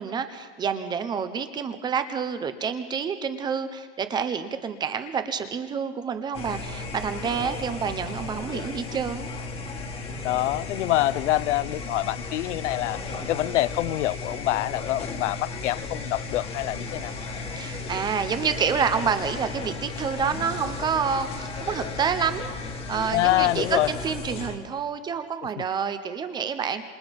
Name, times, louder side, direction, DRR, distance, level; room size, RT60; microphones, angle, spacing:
voice 1, 0.0-9.3 17.5-26.8, right 6 dB, 10° right, 0.8 m, -28 dB
sound 1, 6.3-24.6, left 3 dB, 15° left, 1.7 m, -35 dB
voice 2, 10.2-13.0 13.3-17.1 23.1-23.9 25.6-25.7, left 16 dB, 85° left, 0.6 m, -25 dB
27.5 x 27.0 x 5.3 m
supercardioid pair, 170°, 35 cm